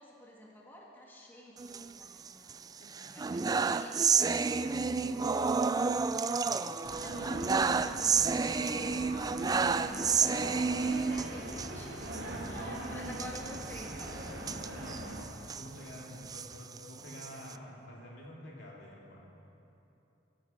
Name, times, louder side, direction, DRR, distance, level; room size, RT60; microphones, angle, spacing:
voice 1, 0.0-2.6 3.1-6.0 6.4-12.0 12.4-14.2, left 1 dB, 10° left, -3 dB, 1.6 m, -51 dB
sound 1, 1.6-2.5 2.9-11.7 12.1-12.2 12.5-12.6 13.1-15.6 16.1-17.5, right 5 dB, 20° right, 0.3 m, -30 dB
voice 2, 2.8-3.2 6.3-6.7 12.3-12.7 14.7-19.3, equal, 65° left, -3 dB, 2.7 m, -49 dB
sound 2, 6.8-15.2, right 1 dB, 65° right, 2.5 m, -41 dB
22.0 x 11.0 x 4.4 m, 2.9 s
head